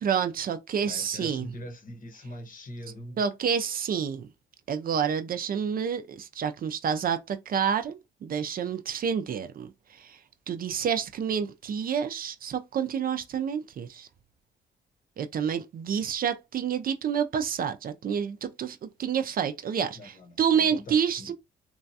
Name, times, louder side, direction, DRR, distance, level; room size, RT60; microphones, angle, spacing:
voice 1, 0.0-1.5 3.2-4.3 4.7-10.2 10.5-14.1 15.2-21.3, right 7 dB, 45° right, 0.4 m, -29 dB
voice 2, 0.8-3.2 19.9-21.3, equal, 45° left, 0.9 m, -42 dB
3.0 x 2.3 x 2.7 m
cardioid pair, 90°, 20 cm